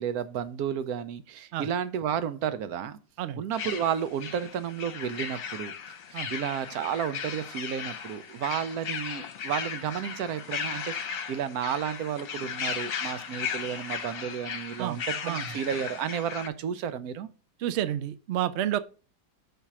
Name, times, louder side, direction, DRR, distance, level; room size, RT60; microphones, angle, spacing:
voice 1, 0.0-3.0 3.4-5.7 6.3-17.3, right 8 dB, 70° right, 1.0 m, -32 dB
sound 1, 3.5-16.5, left 7 dB, 55° left, 1.2 m, -36 dB
voice 2, 14.8-15.5 17.6-18.8, right 11 dB, 85° right, 0.6 m, -30 dB
5.7 x 4.3 x 6.0 m
omnidirectional pair, 1.8 m